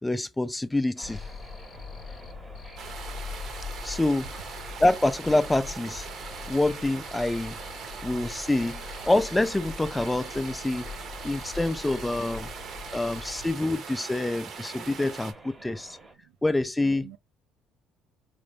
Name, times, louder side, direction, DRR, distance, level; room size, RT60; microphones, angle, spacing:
voice 1, 0.0-1.2 3.8-4.3 4.8-6.1 6.5-7.6 8.0-10.9 11.2-12.5 12.9-16.0 16.4-17.1, left 2 dB, 10° left, 0.4 m, -26 dB
Cricket, 1.0-13.5, left 5 dB, 55° left, 0.8 m, -42 dB
sound 1, 1.0-16.1, right 2 dB, 15° right, 1.0 m, -50 dB
sound 2, 2.8-15.3, right 6 dB, 60° right, 0.7 m, -41 dB
voice 2, 6.1-6.5 7.9-8.1 10.9-11.1 12.4-13.0 14.7-14.8 15.6-15.8 16.2-16.3 16.8-17.2, right 16 dB, 85° right, 0.3 m, -53 dB
3.8 x 2.0 x 3.2 m
supercardioid pair, 85°, 0 cm